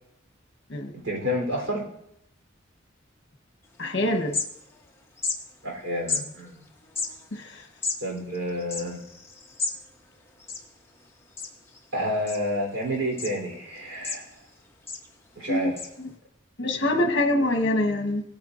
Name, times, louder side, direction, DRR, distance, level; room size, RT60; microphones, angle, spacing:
voice 1, 1.0-1.8 5.6-6.6 8.0-9.0 11.9-14.3 15.4-15.8, equal, 75° right, -1 dB, 3.6 m, -29 dB
sound 1, 3.7-3.8 4.1-4.9 5.2-5.4 6.1-6.2 6.8-9.8 10.1-10.2 10.4-11.0 11.4-11.8 12.3-12.8 13.2-13.3 13.8-14.5 14.9-15.1 15.8-15.9, left 4 dB, 15° left, 1.0 m, -32 dB
voice 2, 3.8-4.4 7.3-7.6 15.5-15.7 16.6-18.2, left 1 dB, 60° left, 4 dB, 1.2 m, -24 dB
17.0 x 8.8 x 2.5 m, 0.77 s
head